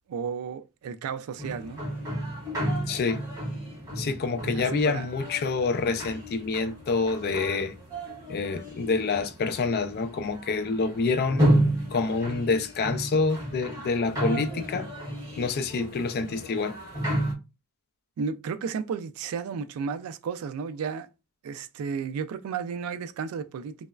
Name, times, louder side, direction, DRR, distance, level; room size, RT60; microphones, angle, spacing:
voice 1, 0.1-1.8 4.5-5.1 18.2-21.1 21.4-23.9, right 6 dB, 85° right, 0.3 m, -33 dB
sound 1, 1.4-17.3, right 1 dB, 15° right, 1.4 m, -31 dB
voice 2, 2.9-3.2 4.0-7.7 8.3-11.5 11.9-14.9 15.4-16.8, left 4 dB, 45° left, 0.3 m, -27 dB
3.0 x 2.0 x 2.3 m
head